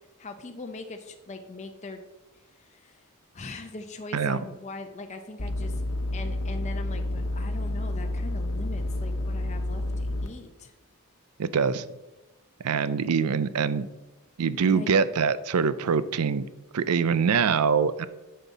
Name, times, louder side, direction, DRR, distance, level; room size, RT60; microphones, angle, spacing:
voice 1, 0.2-2.0 2.3-3.0 3.3-5.8 6.1-10.7 14.6-14.9, left 3 dB, 30° left, 5 dB, 0.6 m, -41 dB
sound 1, 5.4-10.3, left 1 dB, 65° left, 1.0 m, -29 dB
voice 2, 11.4-11.8 12.6-13.9 14.4-16.5 16.7-18.1, right 6 dB, 85° right, 15 dB, 0.5 m, -24 dB
11.0 x 5.7 x 4.1 m, 1.0 s
head